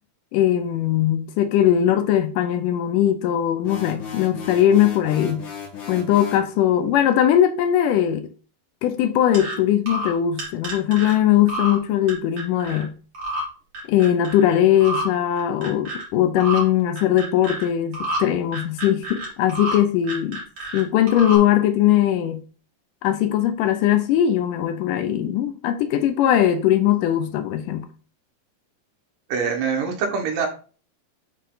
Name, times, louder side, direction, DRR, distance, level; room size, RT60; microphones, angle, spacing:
voice 1, 0.3-5.5 5.9-8.3 8.8-12.9 13.9-20.4 20.7-22.4 23.0-27.9, left 11 dB, 80° left, 2.1 m, -20 dB
sound 1, 3.6-6.5, left 6 dB, 50° left, 2.0 m, -35 dB
sound 2, 9.3-9.5 9.9-10.1 10.4-11.1 11.5-11.8 12.1-12.8 13.1-13.4 13.7-14.4 14.8-15.0 15.4-16.0 16.4-16.6 17.0-17.6 17.9-18.2 18.5-19.8 20.0-20.8 21.1-21.4, right 1 dB, 45° right, 3.7 m, -29 dB
voice 2, 29.3-30.5, right 5 dB, 75° right, 2.9 m, -24 dB
9.0 x 4.1 x 3.8 m
omnidirectional pair, 4.0 m